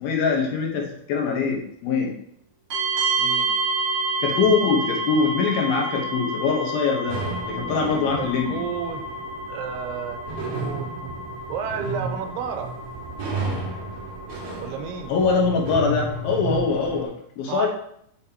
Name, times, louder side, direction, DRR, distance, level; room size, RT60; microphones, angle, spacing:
voice 1, 0.0-2.1 4.2-7.2 7.5-8.6 15.1-17.7, left 5 dB, 75° left, 0 dB, 2.8 m, -23 dB
sound 1, 2.7-17.0, right 2 dB, 50° right, 3.2 m, -30 dB
voice 2, 3.2-3.6 8.2-9.0 9.5-10.2 10.5-11.1 11.5-12.8 14.6-15.1 17.4-17.7, right 7 dB, 90° right, 5 dB, 2.7 m, -32 dB
sound 2, 7.1-17.0, right 2 dB, 70° right, 3.3 m, -33 dB
8.4 x 5.2 x 2.9 m, 0.70 s
omnidirectional pair, 4.5 m